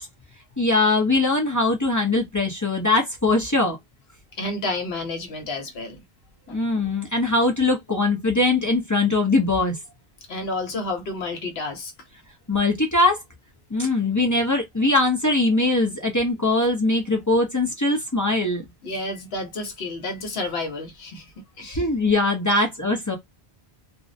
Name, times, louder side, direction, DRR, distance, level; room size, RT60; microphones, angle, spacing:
voice 1, 0.6-3.8 6.5-9.8 12.5-13.2 13.7-18.6 21.7-23.2, left 2 dB, 25° left, 0.4 m, -21 dB
voice 2, 4.4-6.0 6.5-6.6 10.3-11.9 18.8-21.8 22.5-22.6, left 2 dB, 70° left, 1.0 m, -30 dB
2.4 x 2.0 x 2.5 m
omnidirectional pair, 1.1 m